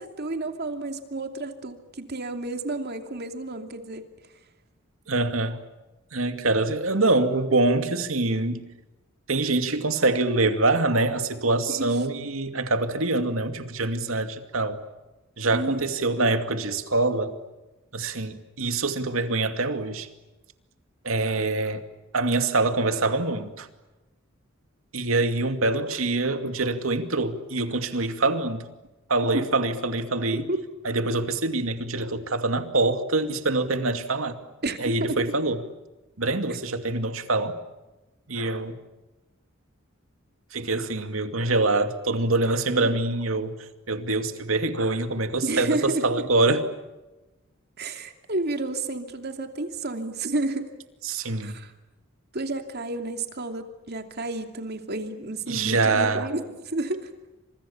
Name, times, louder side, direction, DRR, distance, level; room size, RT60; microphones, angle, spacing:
voice 1, 0.0-4.0 11.7-11.9 15.5-15.9 29.3-29.5 30.3-30.6 34.6-35.3 42.7-43.0 45.4-46.2 47.8-50.7 51.4-51.7 52.3-57.1, right 2 dB, 55° right, 2.7 m, -31 dB
voice 2, 5.1-5.6 6.1-8.7 9.3-14.8 15.4-17.3 17.9-20.1 21.0-21.8 22.1-23.7 24.9-28.6 29.1-30.4 30.8-34.4 34.8-35.6 36.2-37.5 38.3-38.8 40.5-43.5 43.9-46.6 51.0-51.6 55.5-56.3, right 2 dB, 80° right, 2.5 m, -25 dB
29.5 x 27.0 x 7.3 m
head